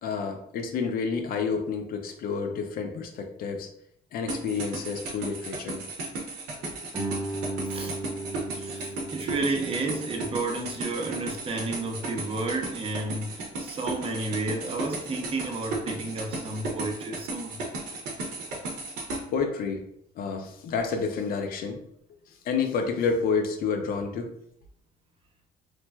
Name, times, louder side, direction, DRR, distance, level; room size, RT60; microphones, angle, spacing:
voice 1, 0.0-3.7 4.1-5.8 6.6-6.7 7.7-7.8 19.3-19.9 20.2-21.8 22.4-24.3, left 5 dB, 60° left, 5 dB, 0.5 m, -29 dB
sound 1, 4.3-19.2, right 3 dB, 85° right, 0.8 m, -35 dB
Guitar, 6.9-12.3, right 2 dB, 15° right, 0.9 m, -37 dB
voice 2, 7.7-8.0 8.5-17.6, right 2 dB, 35° right, 2 dB, 0.6 m, -31 dB
3.1 x 2.5 x 2.2 m, 0.74 s
cardioid pair, 110°, 17 cm